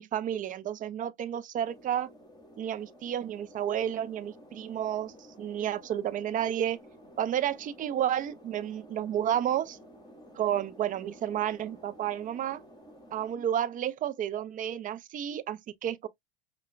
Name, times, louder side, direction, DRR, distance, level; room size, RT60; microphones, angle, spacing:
voice 1, 0.0-2.1 2.6-6.8 7.2-9.8 10.4-12.6 13.1-16.1, right 10 dB, 25° right, 0.4 m, -31 dB
sound 1, 1.6-13.4, equal, 10° left, 1.9 m, -53 dB
5.4 x 2.2 x 2.3 m
hypercardioid pair, 90°, 33 cm